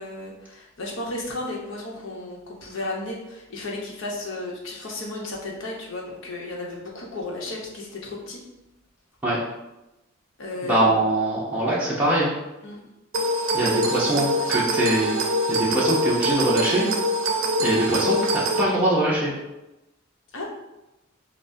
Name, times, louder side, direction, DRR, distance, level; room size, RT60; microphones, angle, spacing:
voice 1, 0.0-8.4 10.4-11.1 12.6-12.8 13.6-14.6 20.3-20.5, left 2 dB, 70° left, -2 dB, 0.9 m, -34 dB
voice 2, 10.6-12.3 13.5-15.1 15.5-16.9 17.6-19.3, right 1 dB, 10° right, -8 dB, 0.6 m, -22 dB
sound 1, 13.1-18.6, right 1 dB, 80° right, 0.5 m, -24 dB
5.8 x 2.1 x 2.6 m, 0.97 s
head